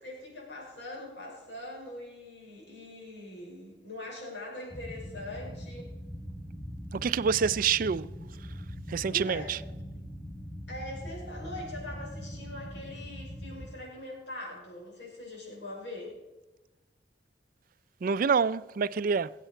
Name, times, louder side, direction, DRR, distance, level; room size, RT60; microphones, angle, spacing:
voice 1, 0.0-5.9 9.1-9.5 10.7-16.2, left 1 dB, 85° left, 5.5 m, -42 dB
sound 1, 4.7-13.7, equal, 10° left, 5.3 m, -42 dB
voice 2, 6.9-8.1 8.9-9.6 18.0-19.3, right 6 dB, 50° right, 0.4 m, -27 dB
21.0 x 8.2 x 4.5 m
head